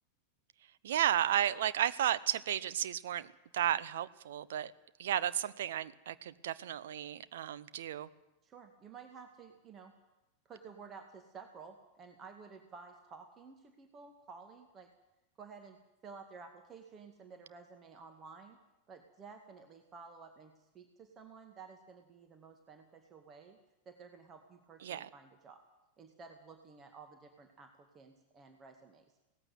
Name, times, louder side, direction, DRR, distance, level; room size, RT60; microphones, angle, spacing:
voice 1, 0.8-3.3 3.5-4.7 5.0-8.1 24.8-25.1, right 11 dB, 60° right, 15 dB, 0.9 m, -33 dB
voice 2, 8.4-9.9 10.5-14.9 15.4-15.8 16.0-18.6 18.9-23.6 23.9-25.6 26.0-29.1, right 5 dB, 25° right, 6 dB, 2.0 m, -53 dB
18.0 x 15.0 x 9.5 m, 0.96 s
figure-of-eight pair, 90°, 0 cm